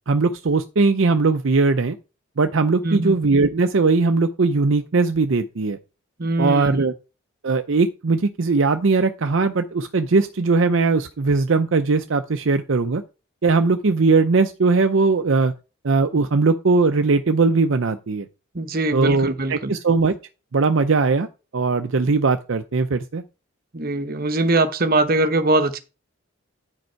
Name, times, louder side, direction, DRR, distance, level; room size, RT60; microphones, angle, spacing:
voice 1, 0.1-2.0 2.4-5.8 6.4-6.9 7.4-13.0 13.4-15.5 15.8-18.3 18.9-20.1 20.5-21.3 21.5-23.2, right 3 dB, 60° right, 0.6 m, -19 dB
voice 2, 2.8-3.2 6.2-6.9 18.5-19.7 23.7-25.8, right 2 dB, 45° right, 0.9 m, -22 dB
9.5 x 5.2 x 4.5 m
head